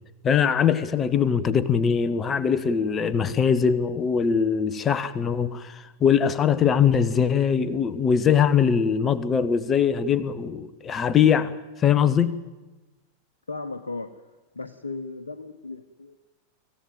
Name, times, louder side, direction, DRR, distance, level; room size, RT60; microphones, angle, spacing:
voice 1, 0.2-11.5 11.8-12.4, left 7 dB, 25° left, 15 dB, 1.2 m, -22 dB
voice 2, 13.5-14.2 14.5-16.3, left 3 dB, 75° left, 7 dB, 1.2 m, -36 dB
25.5 x 15.5 x 9.0 m, 1.2 s
figure-of-eight pair, 90°, 0 cm